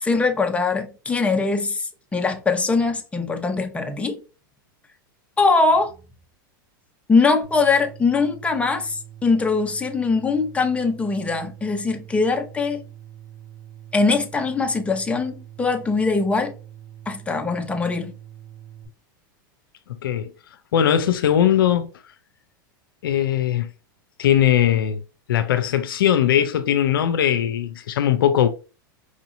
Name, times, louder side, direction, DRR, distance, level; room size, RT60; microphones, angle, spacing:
voice 1, 0.0-4.2 5.4-5.9 7.1-12.8 13.9-16.5 17.1-18.1, left 4 dB, 10° left, 0.8 m, -22 dB
sound 1, 7.4-18.9, right 11 dB, 35° right, 1.5 m, -44 dB
voice 2, 19.9-20.3 20.7-21.9 23.0-23.7 24.2-25.0 25.3-28.5, left 10 dB, 80° left, 0.5 m, -19 dB
4.8 x 2.7 x 2.6 m
hypercardioid pair, 105°, 12 cm